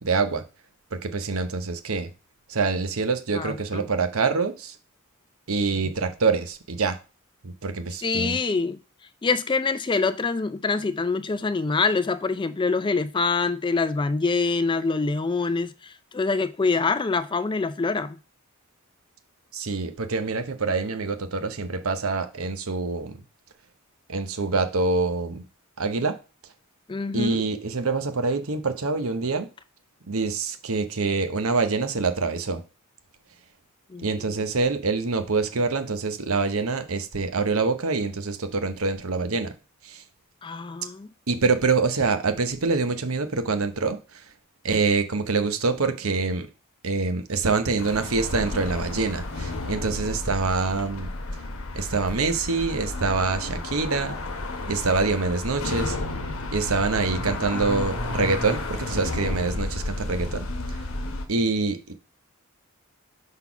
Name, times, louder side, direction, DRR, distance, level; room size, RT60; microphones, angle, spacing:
voice 1, 0.0-0.4 0.9-2.1 2.5-4.7 5.5-7.0 7.4-8.4 19.5-23.2 24.1-25.4 25.8-26.2 27.1-29.5 30.1-32.6 34.0-39.5 39.8-40.0 41.3-44.3 44.6-46.5 46.8-51.1 51.7-54.2 54.7-56.0 56.5-60.8 61.3-61.9, right 4 dB, 70° right, 0.9 m, -25 dB
voice 2, 3.3-3.9 8.0-8.8 9.2-18.2 26.9-27.4 33.9-34.1 40.4-41.1, left 4 dB, 20° left, 0.4 m, -25 dB
sound 1, 47.8-61.3, left 2 dB, 65° left, 1.1 m, -32 dB
5.6 x 4.1 x 5.8 m
head